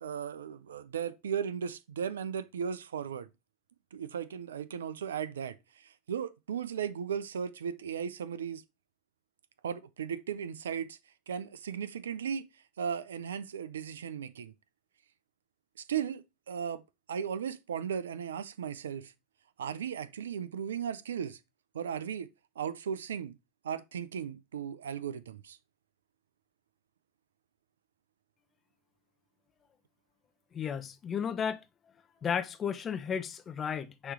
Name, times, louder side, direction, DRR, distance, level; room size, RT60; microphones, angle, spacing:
voice 1, 0.0-3.3 3.9-8.6 9.6-11.0 11.3-12.5 12.8-14.5 15.9-16.8 17.1-19.1 19.6-21.4 21.7-22.3 22.6-23.3 23.6-25.6, right 7 dB, 85° right, 0.6 m, -36 dB
voice 2, 30.5-31.6 32.2-34.1, left 7 dB, 30° left, 0.8 m, -33 dB
6.5 x 3.1 x 4.7 m
hypercardioid pair, 90°, 0 cm